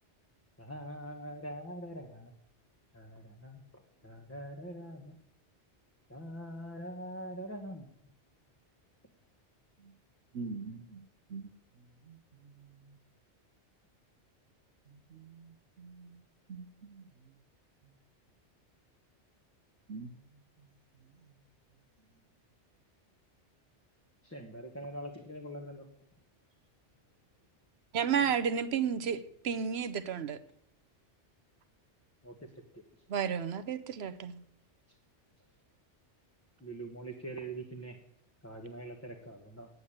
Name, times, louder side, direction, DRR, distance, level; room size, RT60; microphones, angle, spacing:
voice 1, 0.6-2.3 2.9-3.6 4.0-5.1 6.1-7.8 24.2-25.8 32.2-32.3 32.7-32.8 36.6-38.0 38.4-39.7, right 1 dB, 15° left, 1 dB, 1.2 m, -43 dB
voice 2, 10.3-11.0 11.3-11.5 12.1-12.2 15.1-15.5 15.8-16.2 16.5-17.0 19.9-20.1, right 4 dB, 85° right, 7 dB, 1.2 m, -43 dB
voice 3, 27.9-30.4 33.1-34.4, right 7 dB, 65° right, 13 dB, 1.0 m, -31 dB
9.4 x 8.2 x 8.7 m, 0.72 s
omnidirectional pair, 1.2 m